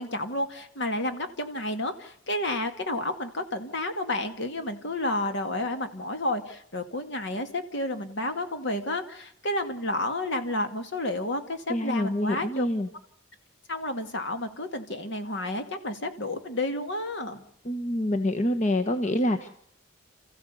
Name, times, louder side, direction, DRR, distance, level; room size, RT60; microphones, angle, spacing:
voice 1, 0.0-12.7 13.7-17.4, left 1 dB, 60° left, 7 dB, 2.2 m, -31 dB
voice 2, 11.7-12.9 17.6-19.5, left 1 dB, 35° left, 6 dB, 1.1 m, -26 dB
29.5 x 15.0 x 8.3 m, 0.70 s
head